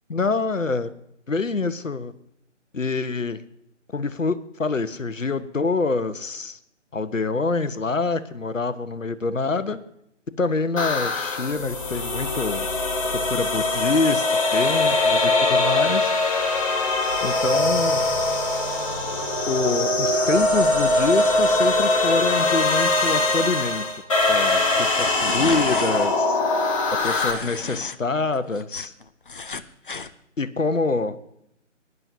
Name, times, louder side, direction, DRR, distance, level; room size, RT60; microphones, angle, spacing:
voice 1, 0.1-0.9 1.3-2.1 2.7-3.4 3.9-6.6 6.9-9.8 10.4-12.7 13.3-14.3 14.5-16.2 17.2-18.0 19.5-23.8 24.3-26.4 27.0-28.9 30.4-31.2, left 3 dB, 80° left, 12 dB, 1.1 m, -26 dB
sound 1, 10.8-27.3, left 2 dB, 25° left, 1.7 m, -22 dB
sound 2, 24.7-26.1 26.9-28.0 28.3-30.1, left 4 dB, 40° left, 0.6 m, -33 dB
21.5 x 11.0 x 2.7 m, 0.77 s
figure-of-eight pair, 155°, 38 cm